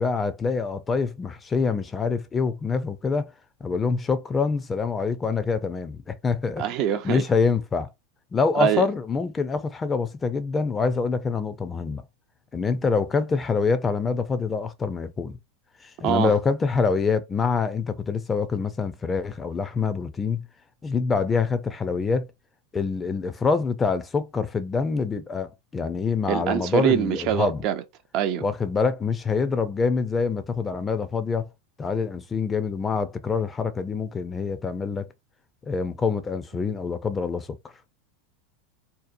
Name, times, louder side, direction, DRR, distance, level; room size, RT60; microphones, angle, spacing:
voice 1, 0.0-3.3 3.6-6.6 7.0-7.9 8.3-12.0 12.5-15.4 15.8-20.5 20.8-22.3 22.7-27.7 28.4-31.5 31.8-35.1 35.6-37.5, left 5 dB, 20° left, 0.4 m, -25 dB
voice 2, 6.6-7.2 8.5-8.8 16.0-16.3 26.3-27.8 28.1-28.4, right 9 dB, 50° right, 0.4 m, -24 dB
2.7 x 2.0 x 2.5 m
hypercardioid pair, 105°, 0 cm